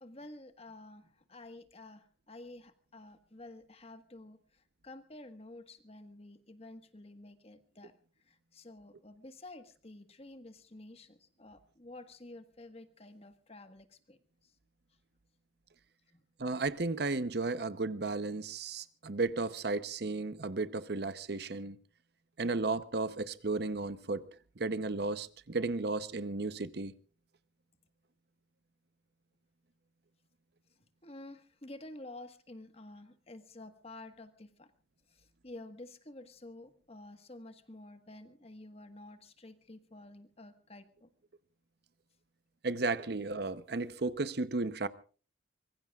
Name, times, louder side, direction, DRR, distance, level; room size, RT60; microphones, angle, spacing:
voice 1, 0.0-8.0 8.2-14.5 16.1-16.2 31.0-34.7 35.1-41.1, left 2 dB, 35° left, 1.5 m, -51 dB
voice 2, 16.4-21.8 22.4-24.3 24.6-26.9 42.6-44.9, right 3 dB, 60° right, 0.8 m, -34 dB
25.0 x 22.0 x 2.4 m
head